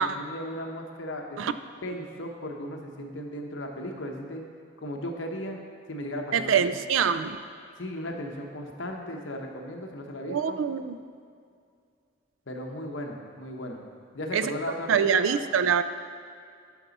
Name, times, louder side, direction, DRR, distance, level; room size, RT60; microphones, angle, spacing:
voice 1, 0.0-1.4 1.8-4.4 4.8-5.6 5.9-6.8 7.8-10.6 12.5-13.8 14.1-15.4, equal, 70° left, 2 dB, 1.0 m, -36 dB
voice 2, 6.3-7.4 10.2-11.0 14.3-14.5 14.9-15.8, right 7 dB, 80° right, 12 dB, 0.4 m, -24 dB
10.5 x 6.0 x 4.1 m, 2.3 s
head